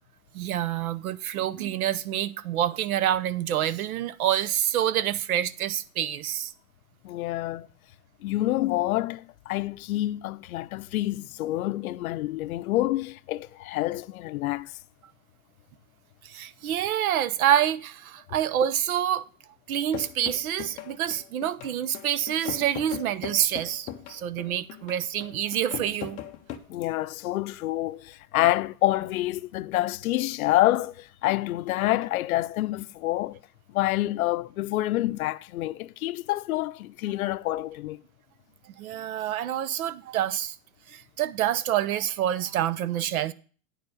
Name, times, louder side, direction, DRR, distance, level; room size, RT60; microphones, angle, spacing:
voice 1, 0.3-6.5 16.2-19.2 19.7-26.2 38.8-40.6 40.9-43.3, right 11 dB, 85° right, 0.8 m, -27 dB
voice 2, 7.0-7.7 8.2-14.8 26.7-33.4 33.7-38.0, left 16 dB, 80° left, 0.6 m, -27 dB
sound 1, 19.9-26.6, left 11 dB, 20° left, 0.4 m, -39 dB
9.2 x 4.8 x 6.3 m
supercardioid pair, 155°, 42 cm